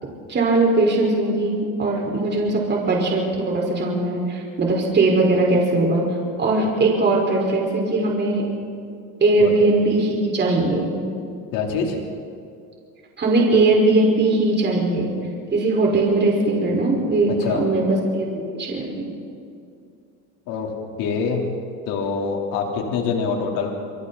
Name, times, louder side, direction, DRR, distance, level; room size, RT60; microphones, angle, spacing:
voice 1, 0.0-6.0 6.4-8.5 9.2-10.9 13.2-15.2 15.5-18.3 18.5-19.1, right 2 dB, 30° right, -1 dB, 5.2 m, -20 dB
voice 2, 11.5-12.0 17.4-17.6 20.5-20.7 21.0-21.4 21.9-23.7, left 5 dB, 70° left, 0 dB, 4.0 m, -24 dB
27.0 x 23.0 x 4.3 m, 2.4 s
cardioid pair, 120°, 35 cm